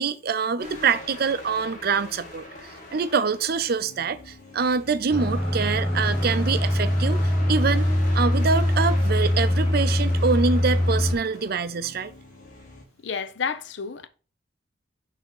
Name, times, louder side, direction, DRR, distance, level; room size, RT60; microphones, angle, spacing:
voice 1, 0.0-7.2 7.5-12.1, right 5 dB, 55° right, 0.5 m, -25 dB
sound 1, 0.6-12.8, left 2 dB, 45° left, 2.0 m, -42 dB
sound 2, 5.1-11.1, left 1 dB, 5° left, 2.7 m, -22 dB
voice 2, 13.0-14.1, left 5 dB, 75° left, 0.6 m, -30 dB
6.4 x 3.5 x 5.4 m
head